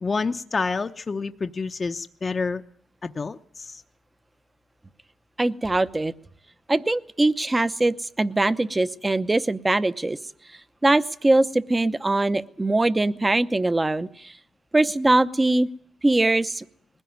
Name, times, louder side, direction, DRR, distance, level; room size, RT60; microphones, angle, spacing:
voice 1, 0.0-2.6 3.0-3.8, left 4 dB, 35° left, 7 dB, 0.8 m, -28 dB
voice 2, 5.4-6.1 6.7-10.2 10.8-14.3 14.7-15.7 16.0-16.6, right 2 dB, 15° right, 14 dB, 0.8 m, -22 dB
20.5 x 16.0 x 9.4 m, 0.66 s
cardioid pair, 95°, 0 cm